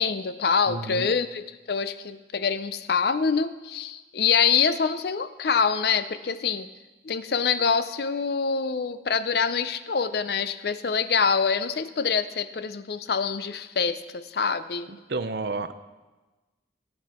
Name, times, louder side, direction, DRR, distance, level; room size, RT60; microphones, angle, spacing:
voice 1, 0.0-6.7 7.0-14.9, left 6 dB, 60° left, 13 dB, 0.5 m, -25 dB
voice 2, 0.7-1.1 14.9-15.7, right 3 dB, 60° right, 11 dB, 0.6 m, -31 dB
15.5 x 8.0 x 4.3 m, 1.2 s
head